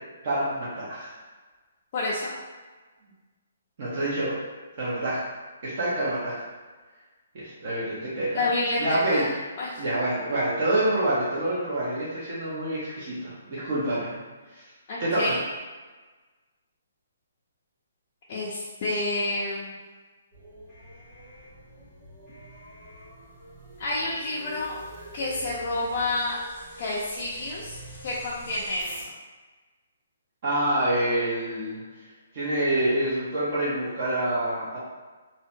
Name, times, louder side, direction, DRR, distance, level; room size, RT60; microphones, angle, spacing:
voice 1, 0.2-1.1 3.8-4.3 4.8-5.2 5.6-6.4 7.3-8.5 8.8-9.2 9.8-14.2 14.5-14.6 15.0-15.3 30.4-31.8 32.3-34.8, right 1 dB, 40° right, -8 dB, 0.7 m, -27 dB
voice 2, 1.9-2.3 8.3-9.3 9.6-9.8 14.9-15.4 18.3-19.8 23.8-24.8 25.1-26.4 26.8-27.8 28.0-28.9, left 2 dB, 30° left, -7 dB, 0.4 m, -29 dB
sound 1, 20.3-29.1, equal, 10° right, 1.0 m, -45 dB
2.7 x 2.1 x 2.6 m, 1.3 s
hypercardioid pair, 170°, 0 cm